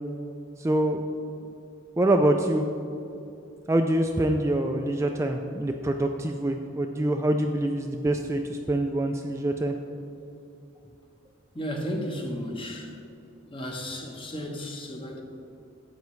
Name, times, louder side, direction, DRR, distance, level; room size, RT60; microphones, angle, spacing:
voice 1, 0.6-1.0 2.0-2.6 3.7-9.7, right 1 dB, 15° right, 4 dB, 0.3 m, -25 dB
voice 2, 11.5-13.0 13.5-15.2, equal, 25° left, 2 dB, 1.0 m, -34 dB
11.5 x 8.2 x 3.2 m, 2.7 s
head